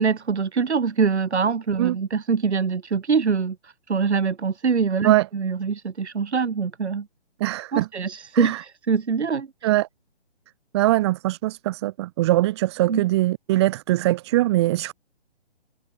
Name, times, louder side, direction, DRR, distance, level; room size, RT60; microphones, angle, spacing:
voice 1, 0.0-7.1 7.7-9.7 12.9-13.0, right 5 dB, 85° right, 1.2 m, -24 dB
voice 2, 7.4-7.9 8.3-8.6 9.6-9.9 10.7-14.9, right 16 dB, 25° right, 1.2 m, -22 dB
figure-of-eight pair, 145°, 33 cm